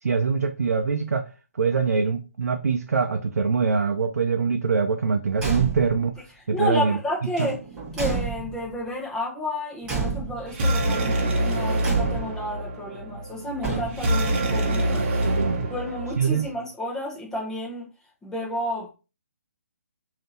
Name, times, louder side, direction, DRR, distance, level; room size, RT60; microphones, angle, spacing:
voice 1, 0.0-1.3 1.6-6.1 6.5-7.0 7.4-7.5 14.9-15.7 16.2-16.5, right 5 dB, 80° right, 0.5 m, -24 dB
Car / Truck / Slam, 5.3-6.1 7.3-8.8 9.8-10.6 11.8-12.5 13.6-14.3, right 5 dB, 10° right, 1.2 m, -30 dB
voice 2, 6.5-7.6 8.0-15.0 15.7-17.9 18.2-18.9, left 1 dB, 5° left, 0.9 m, -31 dB
sound 1, 10.5-16.5, right 1 dB, 40° right, 1.0 m, -26 dB
3.5 x 2.8 x 4.0 m
hypercardioid pair, 155°, 8 cm